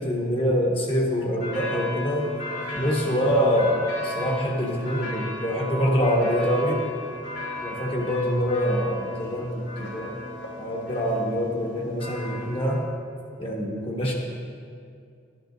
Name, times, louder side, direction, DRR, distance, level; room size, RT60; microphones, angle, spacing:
voice 1, 0.0-2.3 2.7-6.8 7.6-10.2 10.6-12.8 13.4-14.1, equal, 30° left, -2 dB, 1.3 m, -25 dB
sound 1, 1.4-12.8, left 2 dB, 75° left, 2.3 m, -35 dB
12.5 x 11.0 x 2.6 m, 2.3 s
head